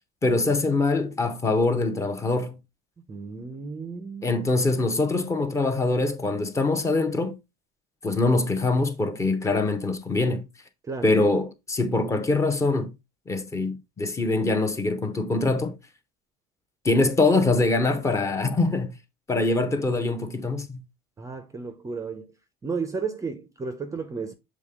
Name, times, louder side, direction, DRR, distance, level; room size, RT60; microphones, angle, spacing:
voice 1, 0.2-2.6 4.2-7.4 8.0-10.5 11.0-12.9 13.3-15.8 16.8-19.0 19.3-20.8, left 3 dB, 15° left, 0.8 m, -23 dB
voice 2, 3.0-4.4 10.9-11.1 21.2-22.3 22.6-24.3, right 5 dB, 15° right, 0.6 m, -33 dB
7.3 x 3.7 x 3.6 m
cardioid pair, 155°, 20 cm